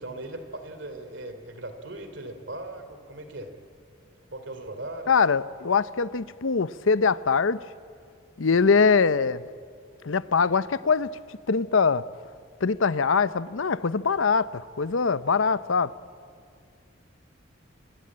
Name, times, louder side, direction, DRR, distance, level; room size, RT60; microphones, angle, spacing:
voice 1, 0.0-3.5 4.3-5.1, right 2 dB, 65° right, 8 dB, 3.1 m, -38 dB
voice 2, 5.1-7.6 8.4-9.4 10.0-11.1 11.5-12.0 12.6-15.9, left 5 dB, 80° left, 16 dB, 0.7 m, -23 dB
27.0 x 25.0 x 8.8 m, 2.2 s
head